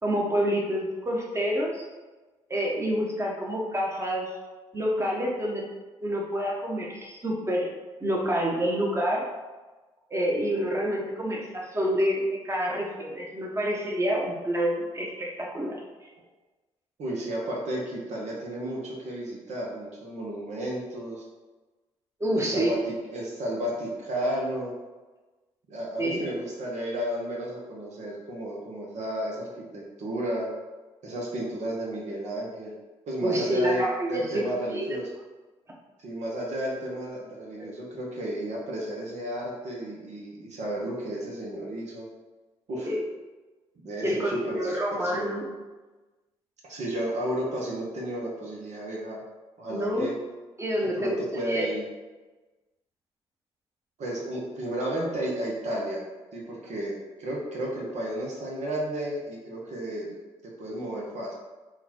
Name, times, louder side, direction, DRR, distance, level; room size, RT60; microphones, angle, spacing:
voice 1, 0.0-1.8 2.5-4.3 4.7-5.6 6.0-7.7 8.0-9.3 10.1-15.8 22.2-22.7 26.0-26.3 33.2-35.0 42.9-43.0 44.0-45.5 49.7-50.1 50.6-51.2 51.4-51.7, equal, 20° right, -2 dB, 1.1 m, -28 dB
voice 2, 17.0-21.2 22.3-24.7 25.7-30.5 31.0-32.7 33.1-35.1 36.0-42.1 42.7-42.9 43.8-45.3 46.6-49.2 49.6-50.1 51.0-51.8 54.0-56.0 56.3-60.2 60.6-61.3, right 1 dB, 65° right, -3 dB, 1.0 m, -33 dB
3.9 x 2.4 x 4.3 m, 1.2 s
supercardioid pair, 50°, 13 cm